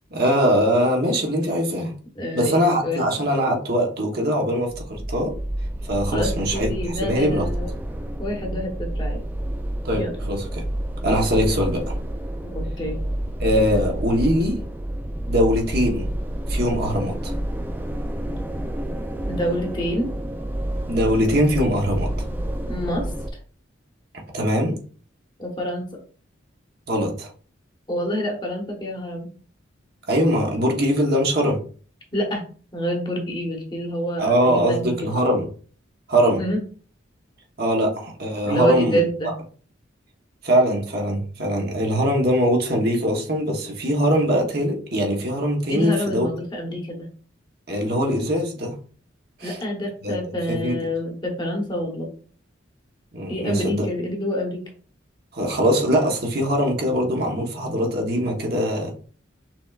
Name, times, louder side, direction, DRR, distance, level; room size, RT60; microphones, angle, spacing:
voice 1, 0.1-1.9 2.3-5.3 5.8-7.5 9.8-10.6 11.0-12.0 13.4-14.6 15.3-16.1 16.5-17.3 20.9-22.3 24.3-24.8 26.9-27.3 30.1-31.6 34.2-35.5 36.1-36.4 37.6-39.3 40.4-46.3 47.7-48.7 49.4-49.6 50.0-50.2 50.5-50.8 53.1-53.8 55.3-58.9, equal, 50° right, 0 dB, 1.2 m, -22 dB
voice 2, 2.2-2.6 2.8-3.0 6.1-7.7 8.2-9.2 9.9-10.2 12.4-13.0 19.3-20.1 22.6-23.0 25.4-25.9 27.9-29.3 32.1-32.4 32.7-35.1 36.4-36.6 38.4-39.3 45.7-47.1 49.4-52.1 53.3-54.6, equal, 25° left, 1 dB, 1.1 m, -27 dB
sound 1, 4.7-23.3, right 1 dB, 10° right, 0.5 m, -29 dB
5.9 x 3.5 x 2.5 m, 0.41 s
head